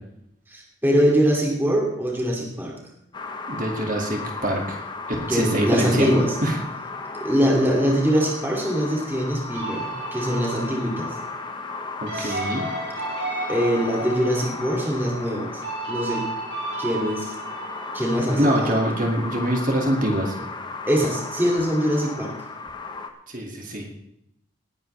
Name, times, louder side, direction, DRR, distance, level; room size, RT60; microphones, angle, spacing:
voice 1, 0.5-2.8 5.3-6.4 7.2-11.2 12.1-12.4 13.5-15.6 15.9-16.2 16.8-17.3 17.9-18.7 20.9-22.3, equal, 10° right, -1 dB, 2.5 m, -23 dB
sound 1, 3.1-23.1, left 3 dB, 25° left, 1.1 m, -35 dB
voice 2, 3.5-4.8 5.3-6.1 6.4-6.6 12.0-12.6 18.4-20.4 23.3-24.0, right 1 dB, 40° right, 1 dB, 2.3 m, -24 dB
sound 2, 9.5-18.9, right 2 dB, 65° right, 4.7 m, -34 dB
19.0 x 10.5 x 3.4 m, 0.77 s
head